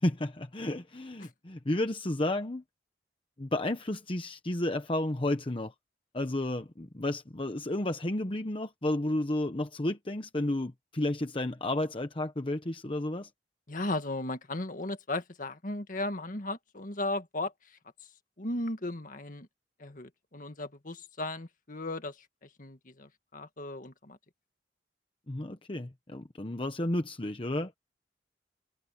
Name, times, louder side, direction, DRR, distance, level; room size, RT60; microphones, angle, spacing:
voice 1, 0.0-2.6 3.4-5.7 6.1-13.3 25.3-27.7, left 1 dB, 30° left, 1.0 m, -32 dB
voice 2, 13.7-17.5 18.4-19.5 19.8-22.2 22.4-24.2, left 2 dB, 50° left, 1.9 m, -36 dB
head